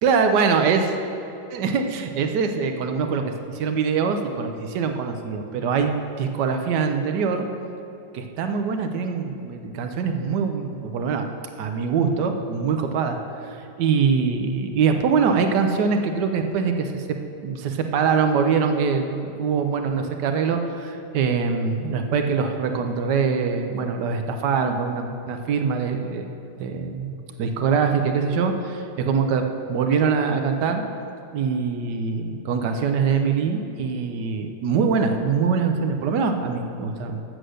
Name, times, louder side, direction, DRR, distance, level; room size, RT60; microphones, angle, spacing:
voice 1, 0.0-0.8 1.5-5.9 6.2-7.5 8.1-11.2 11.6-26.3 26.6-30.8 31.3-37.2, right 5 dB, 85° right, 5 dB, 1.3 m, -23 dB
8.1 x 7.7 x 6.4 m, 2.8 s
omnidirectional pair, 1.8 m